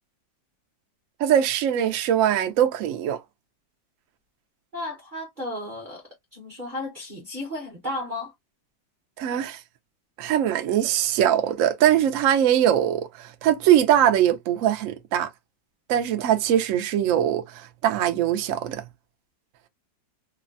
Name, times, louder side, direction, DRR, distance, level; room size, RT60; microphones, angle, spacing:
voice 1, 1.2-3.2 9.2-9.6 10.2-15.3 15.9-18.8, right 10 dB, 90° right, 0.7 m, -22 dB
voice 2, 4.7-8.3, left 1 dB, 45° right, 0.6 m, -34 dB
3.2 x 2.1 x 2.4 m
omnidirectional pair, 2.0 m